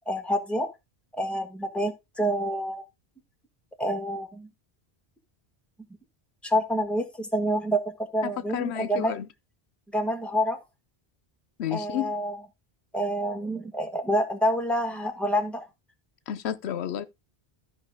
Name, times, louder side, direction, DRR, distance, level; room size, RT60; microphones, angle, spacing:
voice 1, 0.1-0.7 1.2-2.8 3.8-4.5 6.4-9.2 9.9-10.6 11.7-12.4 12.9-15.6, equal, ahead, 1.4 m, -27 dB
voice 2, 8.2-9.2 11.6-12.1 16.3-17.1, left 10 dB, 90° left, 0.9 m, -31 dB
13.5 x 5.2 x 3.5 m
omnidirectional pair, 1.1 m